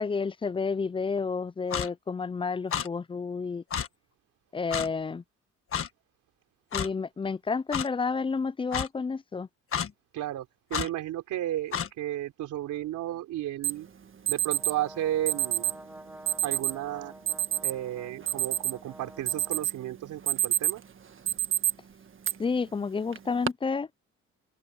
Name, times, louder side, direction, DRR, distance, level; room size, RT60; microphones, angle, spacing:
voice 1, 0.0-3.6 4.5-5.2 6.7-9.5 22.4-23.9, left 5 dB, 20° left, 0.4 m, -30 dB
Clock, 1.7-1.9 2.7-2.9 3.7-3.9 4.7-4.9 5.7-5.9 6.7-6.9 7.7-7.9 8.7-8.9 9.7-9.9 10.7-10.9 11.7-11.9, left 8 dB, 45° left, 1.5 m, -30 dB
voice 2, 10.1-13.9 14.3-15.7 16.4-17.1 17.6-20.8, right 13 dB, 85° right, 3.5 m, -33 dB
Alarm, 13.6-13.7 14.3-14.7 15.3-15.7 16.3-16.7 17.3-17.7 18.1-18.9 19.3-19.8 20.1-20.8 21.3-21.7 22.2-22.3 23.1-23.5, right 12 dB, 40° right, 1.6 m, -27 dB
Brass instrument, 14.5-19.7, right 1 dB, 5° right, 3.9 m, -48 dB
cardioid pair, 90°, 30 cm